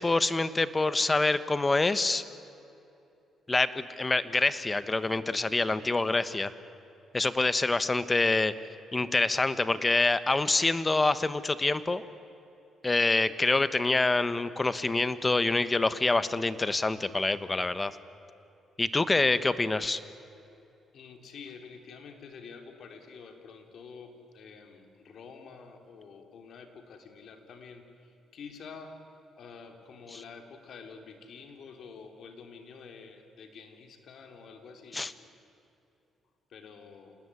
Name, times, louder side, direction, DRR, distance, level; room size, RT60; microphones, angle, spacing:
voice 1, 0.0-2.2 3.5-6.5 7.1-8.5 8.9-12.0 12.8-17.9 18.8-20.0 30.1-30.2 34.9-35.1, left 3 dB, 20° left, 14 dB, 1.2 m, -26 dB
voice 2, 20.9-29.0 29.4-35.3 36.5-37.2, left 5 dB, 65° left, 5 dB, 3.4 m, -48 dB
27.0 x 19.0 x 9.8 m, 2.8 s
cardioid pair, 90°, 0 cm